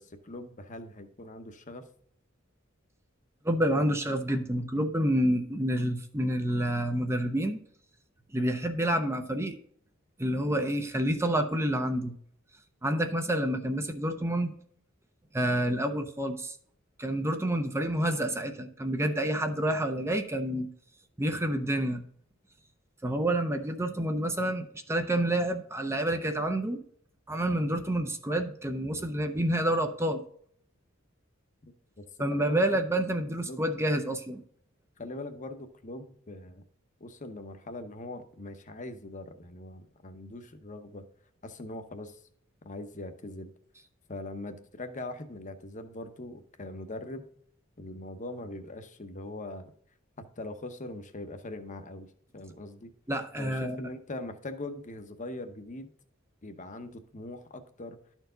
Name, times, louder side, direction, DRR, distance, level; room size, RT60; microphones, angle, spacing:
voice 1, 0.0-1.8 31.6-31.7 32.0-32.1 32.3-32.8 33.4-33.6 35.0-36.6 37.0-41.0 41.4-42.2 42.6-43.5 44.1-47.3 47.8-49.7 50.2-52.1 52.3-52.9 53.4-55.9 56.4-58.0, left 2 dB, 40° left, 9 dB, 0.9 m, -41 dB
voice 2, 3.4-7.6 8.3-9.6 10.2-12.1 12.8-14.5 15.3-16.6 17.0-20.7 21.2-22.0 23.0-26.8 27.3-30.2 32.2-34.4 53.1-53.8, right 1 dB, 15° right, 6 dB, 0.6 m, -28 dB
12.0 x 4.6 x 3.8 m, 0.63 s
head